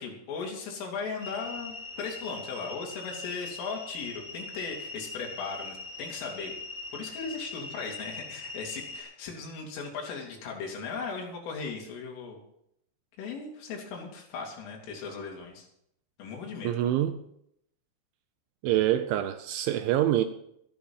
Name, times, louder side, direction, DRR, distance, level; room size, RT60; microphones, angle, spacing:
voice 1, 0.0-6.6 6.9-12.4 13.2-15.7 16.2-16.7, left 5 dB, 75° left, 0 dB, 5.3 m, -37 dB
sound 1, 1.2-9.0, left 3 dB, 20° right, 2.2 m, -41 dB
voice 2, 16.6-17.2 18.6-20.2, right 12 dB, 80° right, 9 dB, 2.8 m, -25 dB
13.5 x 11.5 x 5.6 m, 0.74 s
omnidirectional pair, 5.9 m